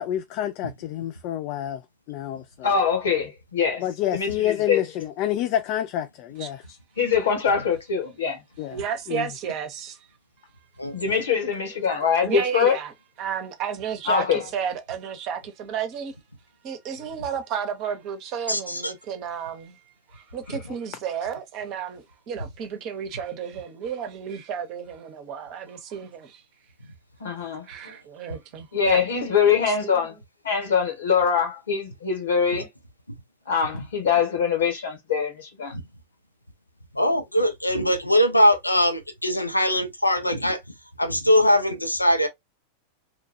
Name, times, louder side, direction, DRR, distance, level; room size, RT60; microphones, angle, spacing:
voice 1, 0.0-1.8 2.1-2.7 3.8-6.8 8.6-8.8 9.1-9.3, left 11 dB, 45° left, 0.3 m, -28 dB
voice 2, 2.6-3.8 4.1-4.8 7.0-8.4 10.9-12.8 14.1-14.4 27.2-27.7 28.7-30.1 30.4-32.7 33.5-35.8, left 6 dB, 65° left, 1.3 m, -23 dB
voice 3, 8.7-10.1 11.7-11.9 12.2-12.9 13.2-16.2 16.6-19.8 20.1-26.4 27.6-29.0 29.7-30.0, right 7 dB, 40° right, 0.7 m, -32 dB
voice 4, 10.8-11.2 18.5-18.9 27.8-27.9 33.1-33.2 33.7-33.8 35.7-35.8 36.9-40.6 41.0-42.3, equal, 85° left, 0.8 m, -22 dB
2.9 x 2.3 x 2.6 m
figure-of-eight pair, 90°, 0 cm